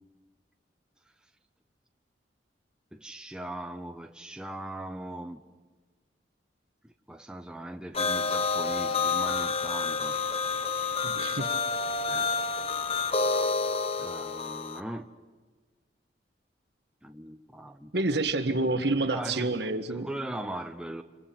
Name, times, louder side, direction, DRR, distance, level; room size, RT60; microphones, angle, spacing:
voice 1, 2.9-5.4 6.8-10.2 12.1-12.4 14.0-15.1 17.0-18.0 19.1-19.6 19.9-21.0, right 1 dB, 5° right, 0.7 m, -39 dB
sound 1, 7.9-14.8, left 4 dB, 30° left, 0.9 m, -29 dB
voice 2, 11.0-11.6 17.9-20.1, right 2 dB, 65° right, 1.6 m, -28 dB
29.0 x 26.5 x 6.0 m
head